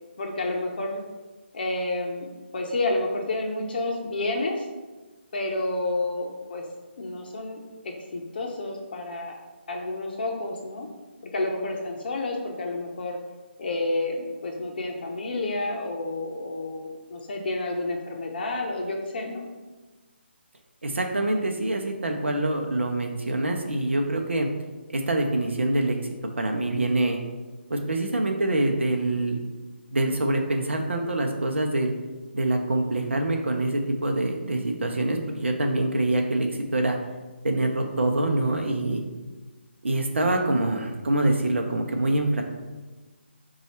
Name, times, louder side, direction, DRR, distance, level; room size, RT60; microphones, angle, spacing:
voice 1, 0.2-1.0 1.5-2.3 2.5-4.7 5.3-6.6 7.0-9.3 9.7-10.9 11.3-13.2 13.6-19.5, left 2 dB, 50° left, 1 dB, 0.6 m, -30 dB
voice 2, 20.8-24.5 24.9-26.0 26.4-27.2 27.7-29.4 29.9-31.9 32.3-37.0 37.4-39.0 39.8-42.4, right 2 dB, 80° right, 3 dB, 0.6 m, -25 dB
4.0 x 2.3 x 4.4 m, 1.2 s
figure-of-eight pair, 150°, 6 cm